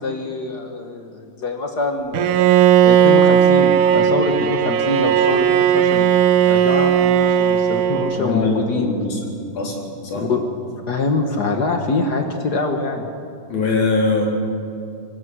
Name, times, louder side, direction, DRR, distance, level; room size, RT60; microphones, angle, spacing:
voice 1, 0.0-2.4 2.8-6.0 6.5-9.0 10.1-10.4 10.9-13.1, left 3 dB, 80° left, 4 dB, 0.9 m, -24 dB
Bowed string instrument, 2.1-8.4, right 9 dB, 70° right, 2.2 m, -16 dB
voice 2, 8.2-9.3 9.5-9.8 10.0-10.2 13.5-14.3, left 3 dB, 60° left, -1 dB, 5.1 m, -21 dB
24.5 x 21.5 x 6.3 m, 2.5 s
omnidirectional pair, 4.0 m